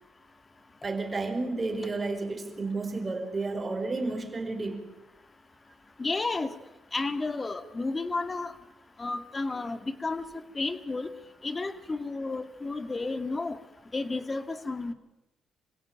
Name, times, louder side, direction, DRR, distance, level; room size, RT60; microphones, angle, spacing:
voice 1, 0.8-4.8, right 3 dB, 25° right, 5 dB, 5.1 m, -31 dB
voice 2, 6.0-6.5 6.9-8.5 9.0-11.1 11.4-13.6 13.9-14.9, left 3 dB, 25° left, 10 dB, 2.1 m, -32 dB
26.5 x 16.5 x 9.0 m, 1.0 s
cardioid pair, 90°, 0 cm